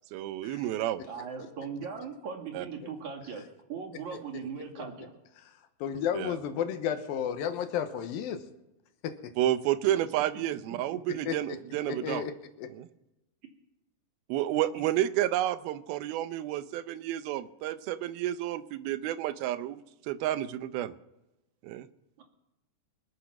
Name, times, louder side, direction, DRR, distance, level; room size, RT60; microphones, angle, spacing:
voice 1, 0.1-1.0 2.5-2.7 6.1-6.4 9.4-12.3 12.7-12.9 14.3-19.8 20.1-20.9 21.6-21.9, right 13 dB, 85° right, 13 dB, 2.6 m, -30 dB
voice 2, 1.1-3.4 3.7-5.1 22.2-22.3, right 6 dB, 55° right, 2 dB, 3.4 m, -39 dB
voice 3, 5.8-8.4 9.0-9.2 11.3-11.6 11.9-12.3 12.6-12.7, left 8 dB, 80° left, 8 dB, 2.8 m, -32 dB
25.0 x 8.5 x 5.9 m, 0.95 s
omnidirectional pair, 4.3 m